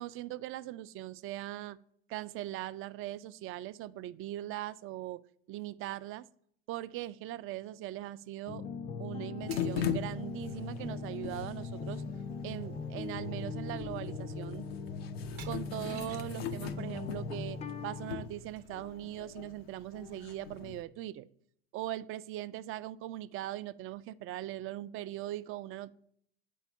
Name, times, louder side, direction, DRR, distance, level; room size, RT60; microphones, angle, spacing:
voice 1, 0.0-1.8 2.1-5.2 5.5-6.3 6.7-8.6 9.0-12.0 12.4-14.7 15.4-21.3 21.7-25.9, right 14 dB, 45° right, 16 dB, 0.4 m, -40 dB
sound 1, 8.5-18.3, left 4 dB, 25° left, 0.4 m, -40 dB
sound 2, 9.5-20.8, left 7 dB, 90° left, 0.6 m, -41 dB
sound 3, 9.5-10.2 12.2-12.3 12.6-12.9 13.3-13.5 13.8-14.4 15.2-16.4 18.0-19.0, right 7 dB, 80° right, 0.7 m, -53 dB
4.6 x 4.1 x 5.1 m, 0.66 s
hypercardioid pair, 75°, 29 cm